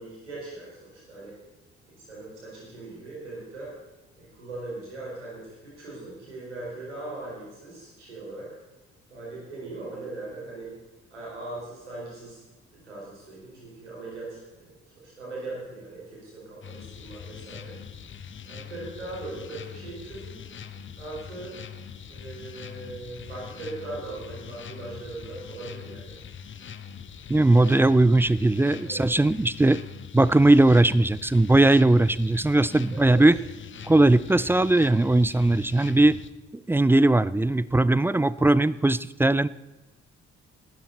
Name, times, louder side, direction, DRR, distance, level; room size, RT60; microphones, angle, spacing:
voice 1, 0.0-1.3 1.8-3.7 4.2-8.5 9.1-10.7 11.1-12.4 12.7-17.8 18.4-20.4 21.0-21.5 22.1-26.2 28.8-29.0 32.9-33.2, right 2 dB, 80° right, -5 dB, 4.9 m, -39 dB
sound 1, 16.6-36.3, left 7 dB, 35° left, 1.0 m, -42 dB
voice 2, 27.3-29.8 30.1-33.4 33.9-36.2 36.7-39.5, right 2 dB, 5° right, 19 dB, 0.4 m, -19 dB
18.5 x 13.0 x 4.1 m, 1.1 s
figure-of-eight pair, 45°, 34 cm